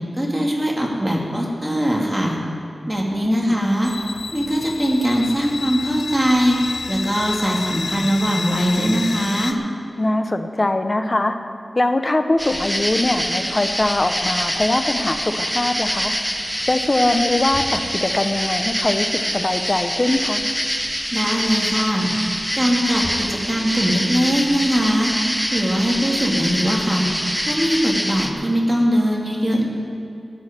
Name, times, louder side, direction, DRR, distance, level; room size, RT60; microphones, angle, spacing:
voice 1, 0.2-2.4 2.9-3.9 4.3-6.6 6.9-9.6 21.1-22.1 22.6-25.1 25.5-27.1 27.4-29.7, equal, 15° right, -2 dB, 2.3 m, -21 dB
voice 2, 3.1-3.5 10.0-11.4 11.8-16.1 16.7-20.4, left 2 dB, 35° left, 7 dB, 0.8 m, -21 dB
sound 1, 3.8-9.5, left 4 dB, 85° left, 0.5 m, -30 dB
sound 2, 12.4-28.3, equal, ahead, 0.9 m, -25 dB
14.5 x 6.3 x 9.8 m, 2.5 s
wide cardioid pair, 100°, 0 cm